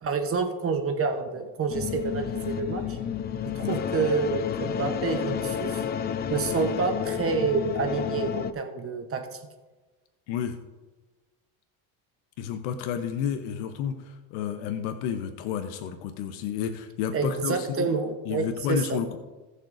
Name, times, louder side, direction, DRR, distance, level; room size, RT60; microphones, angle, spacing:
voice 1, 0.0-3.0 3.4-5.8 6.3-9.4 17.1-19.0, right 4 dB, 30° right, 5 dB, 0.9 m, -28 dB
sound 1, 1.7-8.5, left 8 dB, 25° left, 0.3 m, -30 dB
voice 2, 10.3-10.6 12.4-17.9 18.3-19.2, left 8 dB, 90° left, 7 dB, 0.9 m, -31 dB
19.5 x 6.6 x 2.6 m, 1.2 s
cardioid pair, 135°, 44 cm